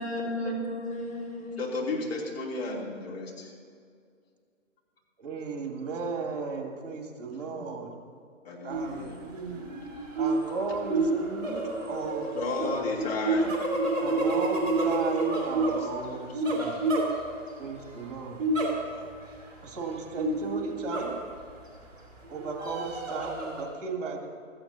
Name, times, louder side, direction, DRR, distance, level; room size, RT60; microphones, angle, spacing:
voice 1, 0.0-2.0, left 1 dB, 30° left, -6 dB, 2.7 m, -34 dB
voice 2, 1.6-3.5 7.5-7.6 8.4-9.1 12.4-13.5 18.6-19.0, left 3 dB, 50° left, -3 dB, 3.1 m, -33 dB
voice 3, 5.2-7.9 8.6-9.7 10.1-13.0 14.0-16.8 17.6-18.4 19.6-21.2 22.3-24.3, right 4 dB, 30° right, 1 dB, 2.4 m, -35 dB
sound 1, 8.7-9.0 9.4-17.6 18.4-19.1 19.4-19.5 20.2-21.6 22.2-23.6, right 2 dB, 10° right, 2.3 m, -29 dB
16.5 x 14.0 x 2.8 m, 2.2 s
figure-of-eight pair, 135°, 38 cm